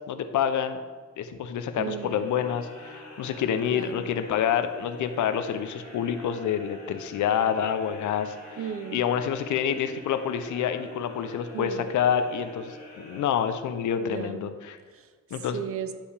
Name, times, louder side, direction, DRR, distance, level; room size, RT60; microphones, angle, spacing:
voice 1, 0.1-0.8 1.2-8.4 8.9-14.8 15.3-15.6, left 8 dB, 75° left, 9 dB, 0.6 m, -27 dB
sound 1, 1.7-14.0, left 1 dB, 55° left, 1.7 m, -46 dB
voice 2, 1.8-2.4 3.7-4.1 8.6-9.1 11.5-12.0 14.0-14.6 14.9-15.9, right 8 dB, 50° right, 11 dB, 0.5 m, -36 dB
10.0 x 5.4 x 3.4 m, 1.5 s
wide cardioid pair, 175°, 30 cm